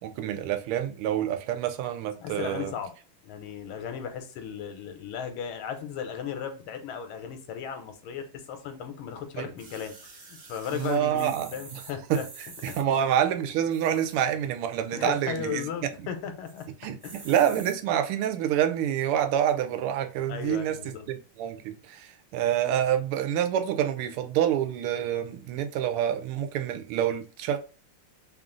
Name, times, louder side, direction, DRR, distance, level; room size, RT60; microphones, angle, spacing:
voice 1, 0.0-2.7 9.4-9.5 10.7-11.5 12.1-12.2 12.6-15.7 16.8-27.6, right 10 dB, 90° right, 1.5 m, -27 dB
voice 2, 2.2-2.9 3.2-12.3 12.6-12.8 14.9-16.7 17.0-17.6 20.3-21.1, left 7 dB, 75° left, 1.5 m, -36 dB
sound 1, 9.6-12.8 13.6-14.3 14.8-14.9 15.0-15.1 15.5-15.9 16.4-16.7 17.0-17.8 18.5-18.6, right 4 dB, 55° right, 0.9 m, -47 dB
3.6 x 2.4 x 3.7 m
omnidirectional pair, 2.4 m